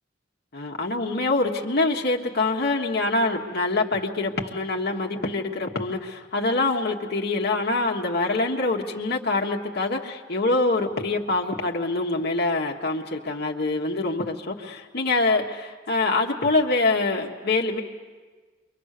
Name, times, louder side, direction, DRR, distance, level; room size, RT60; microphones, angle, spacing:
voice 1, 0.5-17.8, left 2 dB, 55° left, 0 dB, 1.4 m, -25 dB
29.5 x 24.0 x 6.7 m, 1.4 s
head